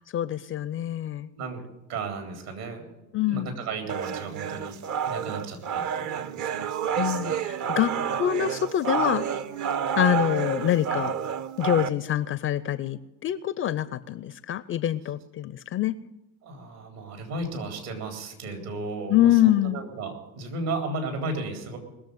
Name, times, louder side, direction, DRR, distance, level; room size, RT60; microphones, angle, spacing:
voice 1, 0.1-1.3 3.1-3.5 6.9-9.3 10.0-11.1 11.6-15.9 19.1-19.8, left 12 dB, 30° left, 18 dB, 0.4 m, -25 dB
voice 2, 1.9-6.7 16.4-21.8, right 3 dB, 65° right, 4 dB, 3.9 m, -35 dB
sound 1, 3.9-11.9, right 8 dB, 40° right, 0.8 m, -29 dB
20.0 x 7.2 x 9.1 m, 0.99 s
figure-of-eight pair, 65°, 48 cm